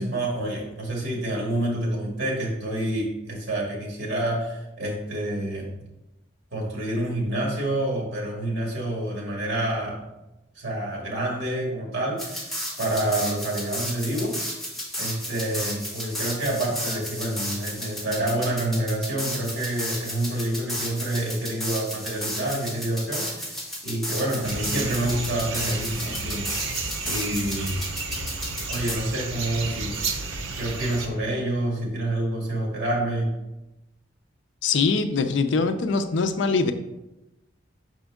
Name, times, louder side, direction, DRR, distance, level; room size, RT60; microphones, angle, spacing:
voice 1, 0.0-5.7 6.5-10.1 10.6-14.4 15.0-26.5 27.0-27.8 28.7-30.1 30.6-33.4, right 1 dB, 55° right, -2 dB, 1.9 m, -28 dB
sound 1, 12.2-28.9, equal, ahead, 1.5 m, -33 dB
sound 2, 24.4-31.1, right 4 dB, 80° right, 0.8 m, -32 dB
voice 2, 34.6-36.7, left 4 dB, 65° left, 9 dB, 0.4 m, -23 dB
6.1 x 4.3 x 3.5 m, 0.99 s
head